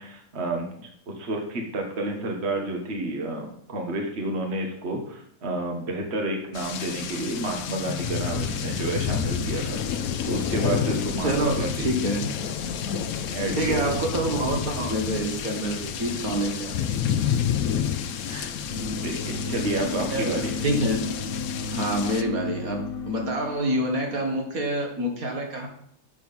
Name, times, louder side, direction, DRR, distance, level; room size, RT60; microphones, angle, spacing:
voice 1, 0.0-11.9 13.3-14.0 16.0-16.2 18.2-18.5 18.9-20.5, right 2 dB, 45° right, 2 dB, 1.7 m, -30 dB
sound 1, 6.5-22.2, left 8 dB, 70° left, 1.1 m, -29 dB
voice 2, 11.2-12.3 13.6-17.1 20.1-20.4 20.6-21.1 21.7-25.7, right 1 dB, 70° right, 2 dB, 2.0 m, -27 dB
sound 2, 18.7-24.2, left 3 dB, 45° left, 0.9 m, -34 dB
6.8 x 6.1 x 7.1 m, 0.68 s
omnidirectional pair, 1.6 m